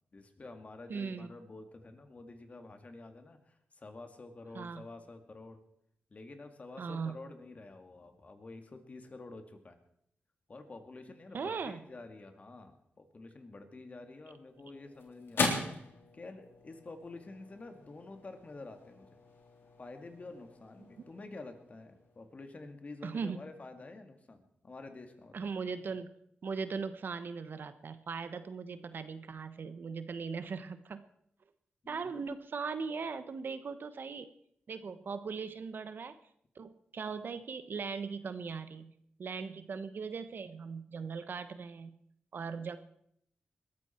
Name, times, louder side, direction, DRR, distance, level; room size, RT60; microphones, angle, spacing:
voice 1, 0.1-5.6 6.1-9.8 10.5-15.6 16.1-19.1 19.8-25.5 31.8-32.1 34.8-34.9, left 3 dB, 40° left, 6 dB, 2.2 m, -49 dB
voice 2, 0.9-1.3 4.5-4.8 6.8-7.2 11.3-11.8 23.0-23.4 25.3-26.1 26.4-31.0 31.9-34.3 34.7-36.2 36.5-38.9 39.2-42.0 42.3-42.8, right 5 dB, 65° right, 11 dB, 1.1 m, -39 dB
sound 1, 14.1-22.6, left 3 dB, 80° left, 3.5 m, -40 dB
21.0 x 13.5 x 4.5 m, 0.70 s
wide cardioid pair, 95°, 4 cm